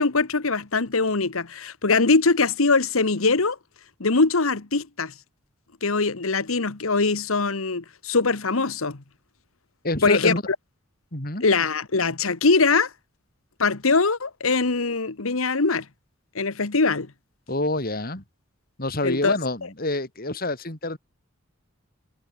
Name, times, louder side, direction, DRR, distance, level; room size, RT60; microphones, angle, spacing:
voice 1, 0.0-3.6 4.0-5.1 5.8-9.0 10.0-10.3 11.4-12.9 13.6-15.8 16.3-17.1 19.0-19.3, left 4 dB, 85° left, 1.4 m, -22 dB
voice 2, 9.8-10.4 11.1-11.5 17.5-18.2 18.8-21.0, left 2 dB, 45° left, 4.0 m, -27 dB
head